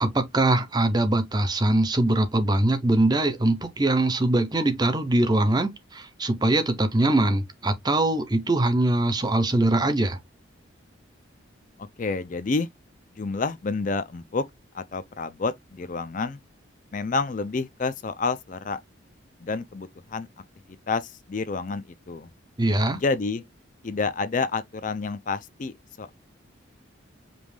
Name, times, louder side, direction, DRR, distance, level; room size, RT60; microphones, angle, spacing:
voice 1, 0.0-10.2 22.6-23.0, right 1 dB, 20° right, 0.6 m, -22 dB
voice 2, 11.8-12.7 13.2-14.4 14.7-16.4 16.9-18.8 19.4-20.3 20.9-22.3 22.9-23.4 23.8-26.1, left 4 dB, 40° left, 0.4 m, -29 dB
5.2 x 2.4 x 3.2 m
head